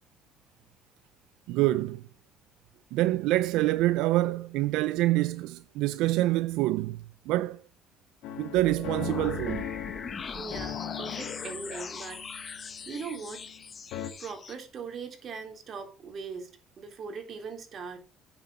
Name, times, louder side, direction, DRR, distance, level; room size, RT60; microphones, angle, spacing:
voice 1, 1.5-2.0 2.9-7.6 8.4-9.7, right 17 dB, 85° right, 0.4 m, -26 dB
sound 1, 8.2-13.6 13.9-14.1, left 10 dB, 85° left, 1.6 m, -39 dB
sound 2, 8.6-14.5, left 5 dB, 35° left, 1.3 m, -40 dB
voice 2, 10.2-13.4 14.2-16.5 16.8-18.0, right 5 dB, 50° right, 3.5 m, -40 dB
9.7 x 7.1 x 5.0 m
cardioid pair, 105°, 0 cm